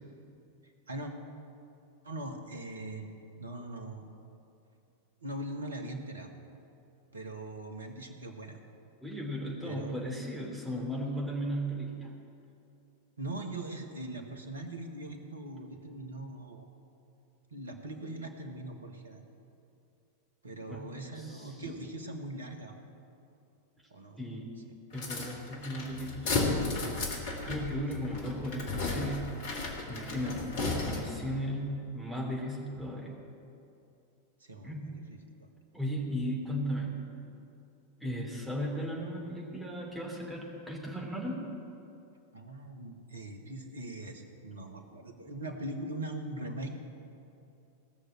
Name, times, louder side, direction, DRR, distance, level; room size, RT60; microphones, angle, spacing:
voice 1, 0.6-1.1 2.0-3.1 3.4-4.1 5.2-6.3 7.1-8.6 9.6-10.1 13.2-16.7 17.5-19.2 20.4-22.8 23.9-24.2 27.9-28.0 30.2-30.5 34.4-35.5 42.3-46.8, right 1 dB, 75° right, 5 dB, 1.3 m, -41 dB
voice 2, 9.0-12.1 20.7-21.7 24.2-24.5 24.9-26.8 27.4-29.3 29.9-30.5 30.8-33.2 34.6-34.9 35.7-37.3 38.0-41.5, equal, ahead, -4 dB, 3.0 m, -36 dB
sound 1, 24.9-31.3, left 3 dB, 50° left, 2.1 m, -34 dB
18.0 x 6.6 x 7.7 m, 2.7 s
figure-of-eight pair, 90°, 0 cm